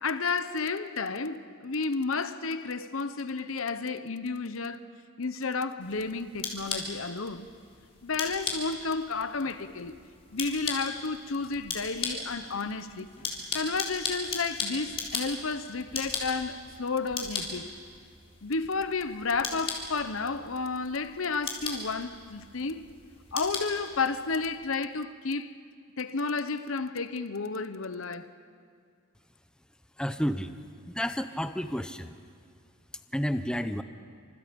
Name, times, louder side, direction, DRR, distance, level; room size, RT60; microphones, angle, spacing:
voice 1, 0.0-4.8 5.2-7.5 8.0-9.9 10.3-13.1 13.5-17.7 18.4-22.8 23.3-25.5 26.0-28.3, left 4 dB, 70° left, 1.0 m, -32 dB
sound 1, 5.8-24.6, left 4 dB, 30° left, 3.7 m, -38 dB
voice 2, 30.0-30.6 30.9-32.1 33.1-33.8, equal, 5° left, 0.6 m, -30 dB
29.0 x 26.0 x 5.3 m
head